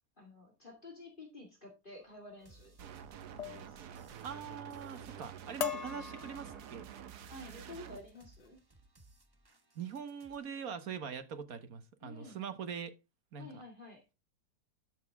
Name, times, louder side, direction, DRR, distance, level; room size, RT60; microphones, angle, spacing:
voice 1, 0.2-2.7 3.4-3.9 7.3-8.6 12.0-12.4 13.4-14.1, left 2 dB, 30° left, 2.4 m, -51 dB
sound 1, 2.4-2.7 3.4-3.7 4.1-4.6 5.0-5.2 5.6-6.9 7.5-7.8 8.1-8.5, left 8 dB, 65° left, 0.3 m, -41 dB
sound 2, 2.4-10.4, right 2 dB, 20° right, 0.9 m, -63 dB
sound 3, 2.8-8.0, right 9 dB, 85° right, 1.4 m, -49 dB
voice 2, 4.2-6.8 9.7-12.9 13.3-13.6, right 7 dB, 65° right, 1.6 m, -43 dB
12.0 x 6.7 x 3.5 m
omnidirectional pair, 1.7 m